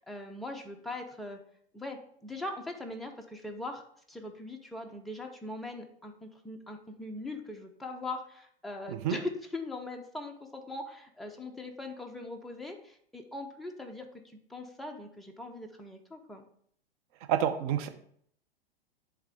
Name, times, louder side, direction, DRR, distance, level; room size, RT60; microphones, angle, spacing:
voice 1, 0.0-1.4 1.7-16.4, left 2 dB, ahead, 2 dB, 0.4 m, -41 dB
voice 2, 17.3-17.9, right 10 dB, 40° right, 7 dB, 0.7 m, -28 dB
10.5 x 3.5 x 3.5 m, 0.64 s
figure-of-eight pair, 105°, 30 cm